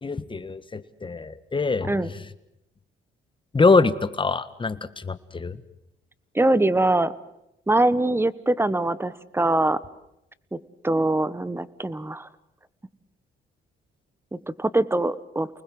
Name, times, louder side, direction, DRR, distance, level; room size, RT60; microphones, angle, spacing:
voice 1, 0.0-1.9 3.5-5.6, left 4 dB, 25° left, 13 dB, 1.6 m, -23 dB
voice 2, 6.3-7.1 7.7-9.8 10.5-10.6 10.8-12.3 14.3-15.5, right 2 dB, 10° right, 17 dB, 1.2 m, -23 dB
29.5 x 20.5 x 7.8 m, 0.83 s
cardioid pair, 90°, 20 cm